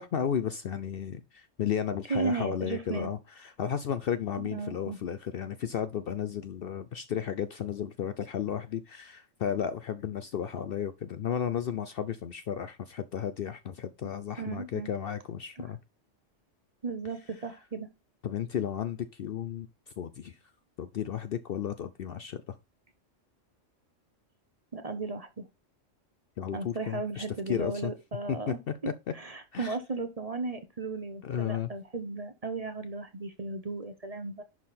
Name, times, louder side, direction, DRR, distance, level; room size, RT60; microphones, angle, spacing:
voice 1, 0.0-15.8 18.2-19.7 20.0-20.4 20.8-22.6 26.4-27.9 28.3-28.7 29.1-29.2 29.5-29.8 31.2-31.7, left 8 dB, 60° left, 0.7 m, -33 dB
voice 2, 2.1-3.1 4.4-5.0 14.4-14.9 16.8-17.9 24.7-25.5 26.5-34.4, right 3 dB, 35° right, 0.9 m, -35 dB
11.0 x 3.8 x 4.2 m
omnidirectional pair, 1.3 m